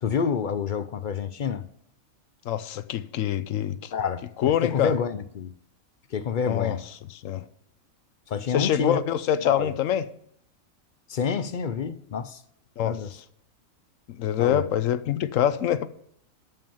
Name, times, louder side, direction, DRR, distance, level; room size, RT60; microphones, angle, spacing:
voice 1, 0.0-1.7 3.9-4.2 4.6-5.5 6.1-6.8 8.3-9.0 9.4-9.7 11.1-12.4 12.8-13.1 14.4-14.6, left 6 dB, 55° left, 0.6 m, -28 dB
voice 2, 2.4-3.9 4.4-4.9 6.4-6.8 7.1-7.4 8.5-10.1 12.8-13.0 14.1-15.9, left 10 dB, 70° left, 1.1 m, -25 dB
12.5 x 5.7 x 7.1 m
omnidirectional pair, 1.4 m